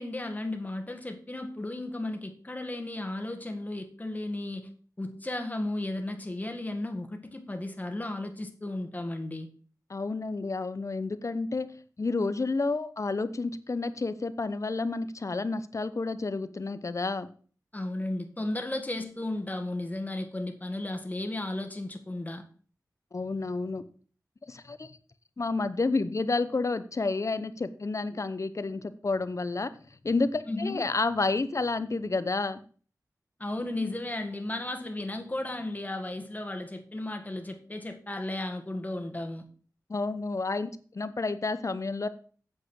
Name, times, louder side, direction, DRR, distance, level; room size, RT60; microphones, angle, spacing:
voice 1, 0.0-4.7 5.0-9.5 17.7-22.4 30.5-30.9 33.4-39.5, left 2 dB, 25° left, 1.9 m, -34 dB
voice 2, 9.9-11.7 12.0-17.3 23.1-23.8 24.5-25.0 25.4-29.7 30.0-32.6 39.9-42.1, left 3 dB, 50° left, 0.9 m, -30 dB
8.6 x 7.7 x 6.3 m
wide cardioid pair, 70°, 7 cm